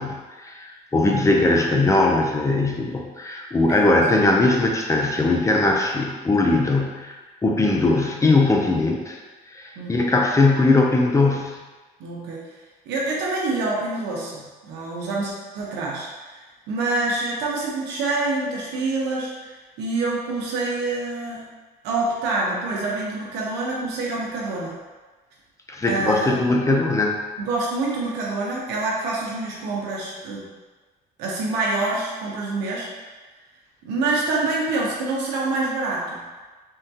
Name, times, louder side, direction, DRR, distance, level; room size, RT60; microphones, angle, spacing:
voice 1, 0.0-9.2 9.5-11.6 25.7-27.2, left 2 dB, 20° left, 0 dB, 0.4 m, -20 dB
voice 2, 9.8-10.1 12.0-12.4 12.9-21.4 21.8-24.7 25.8-26.5 27.4-30.4 31.2-32.9 33.8-36.2, right 3 dB, 85° right, -3 dB, 0.8 m, -26 dB
3.6 x 2.2 x 2.7 m, 1.3 s
cardioid pair, 110°, 17 cm